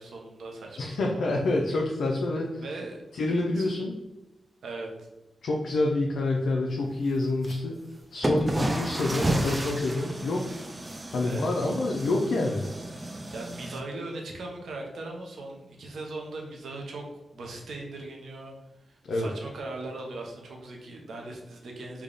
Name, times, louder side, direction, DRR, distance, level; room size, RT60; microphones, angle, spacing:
voice 1, 0.0-1.2 2.6-3.0 3.6-3.7 4.6-4.9 11.2-11.9 13.3-17.0 17.3-18.5 18.9-22.0, right 2 dB, 80° right, 0 dB, 0.7 m, -39 dB
voice 2, 0.8-2.6 3.1-3.9 5.4-7.8 8.1-10.5 11.1-12.7 19.0-19.3, left 2 dB, 80° left, -1 dB, 0.4 m, -27 dB
sound 1, 7.4-7.6 8.2-13.8, right 1 dB, 25° right, 0.4 m, -32 dB
3.4 x 2.3 x 3.8 m, 1.0 s
cardioid pair, 70°, 0 cm